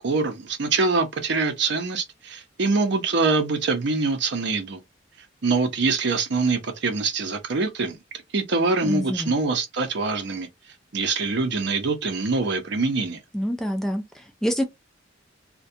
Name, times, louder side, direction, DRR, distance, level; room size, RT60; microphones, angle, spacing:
voice 1, 0.0-4.8 5.4-8.0 8.3-10.5 10.9-13.2, right 3 dB, 65° right, 0.6 m, -24 dB
voice 2, 8.8-9.3 13.3-14.6, equal, ahead, 0.3 m, -26 dB
2.2 x 2.2 x 2.6 m
head